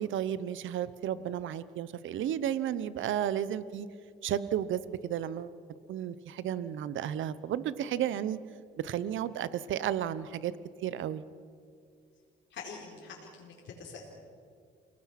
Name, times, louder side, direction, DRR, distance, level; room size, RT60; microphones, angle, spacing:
voice 1, 0.0-3.9 4.2-5.6 5.9-8.4 8.8-10.5 10.8-11.2, right 10 dB, 75° right, 15 dB, 1.0 m, -33 dB
voice 2, 12.5-14.0, left 5 dB, 65° left, -2 dB, 4.2 m, -45 dB
29.0 x 18.5 x 6.0 m, 2.2 s
cardioid pair, 90°, 20 cm